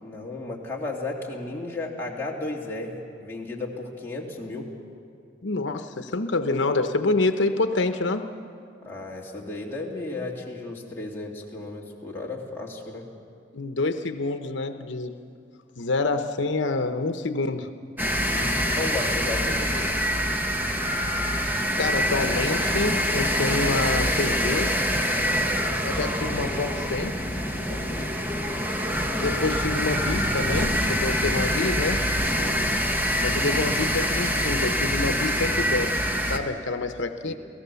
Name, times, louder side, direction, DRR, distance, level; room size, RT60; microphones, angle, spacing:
voice 1, 0.0-4.7 8.8-13.0 18.2-19.9 25.2-25.6 27.7-28.2 32.4-32.6 37.2-37.3, left 2 dB, 10° left, -4 dB, 2.7 m, -34 dB
voice 2, 5.4-8.2 13.5-15.1 15.8-17.7 21.4-24.7 25.8-27.2 29.2-32.0 33.2-37.3, left 3 dB, 80° left, 8 dB, 0.8 m, -27 dB
sound 1, 18.0-36.4, equal, 10° right, 1.3 m, -25 dB
28.5 x 17.5 x 6.9 m, 2.4 s
head